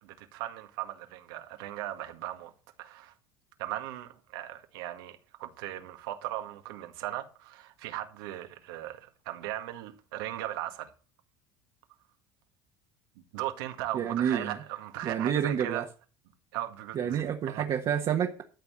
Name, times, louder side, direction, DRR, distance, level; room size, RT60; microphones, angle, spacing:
voice 1, 0.0-2.5 2.8-3.1 3.6-10.9 13.3-15.9 16.5-17.6, right 14 dB, 90° right, 1.9 m, -38 dB
voice 2, 13.9-14.6 15.0-15.8 16.9-18.4, right 8 dB, 40° right, 1.4 m, -29 dB
13.0 x 4.7 x 8.3 m
cardioid pair, 125°, 12 cm